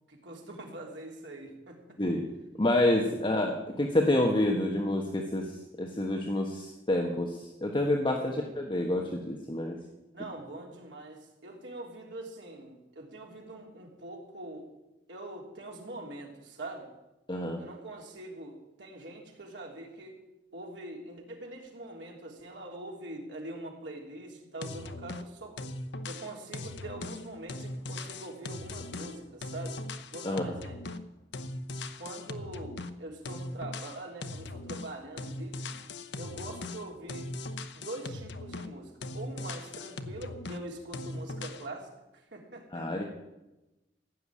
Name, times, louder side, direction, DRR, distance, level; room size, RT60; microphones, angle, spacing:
voice 1, 0.1-2.0 3.0-3.2 8.2-8.4 10.1-14.7 15.1-16.9 17.6-20.2 20.5-25.6 26.0-29.8 30.1-30.8 32.0-35.6 36.2-37.3 37.7-42.9, right 2 dB, 80° right, 0 dB, 3.2 m, -43 dB
voice 2, 2.6-9.8 17.3-17.6 30.2-30.4 42.7-43.1, left 1 dB, 30° left, 1 dB, 1.2 m, -28 dB
sound 1, 24.6-25.3 25.6-31.1 31.3-33.0 33.3-34.9 35.2-38.8 39.0-40.6 40.9-41.7, left 2 dB, 75° left, 0.9 m, -39 dB
15.5 x 6.8 x 9.8 m, 1.0 s
head